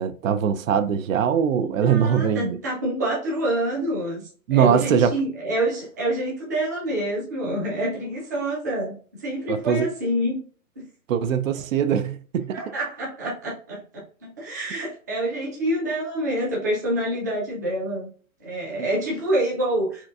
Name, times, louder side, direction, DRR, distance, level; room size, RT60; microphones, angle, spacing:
voice 1, 0.0-2.6 4.5-5.1 9.5-9.9 11.1-12.6 14.7-14.8, right 8 dB, 70° right, 0.5 m, -22 dB
voice 2, 1.6-10.4 10.8-10.9 12.5-18.1 18.4-20.1, right 1 dB, 15° right, 0.4 m, -27 dB
4.4 x 2.4 x 2.3 m
hypercardioid pair, 165°, 42 cm